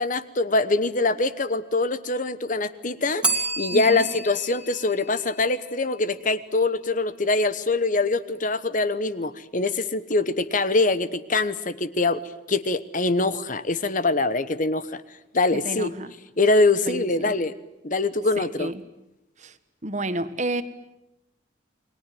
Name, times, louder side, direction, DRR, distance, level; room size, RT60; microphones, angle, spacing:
voice 1, 0.0-12.2 12.5-15.0 15.3-15.9 16.4-17.5 17.8-18.7, left 3 dB, 40° left, 14 dB, 1.1 m, -23 dB
Bell, 3.2-6.0, right 2 dB, 5° right, 2.5 m, -30 dB
voice 2, 3.7-4.1 15.5-16.1 16.9-17.3 18.4-18.8 19.4-19.6 19.8-20.6, right 1 dB, 40° right, 12 dB, 1.5 m, -30 dB
29.0 x 21.0 x 9.3 m, 0.90 s
head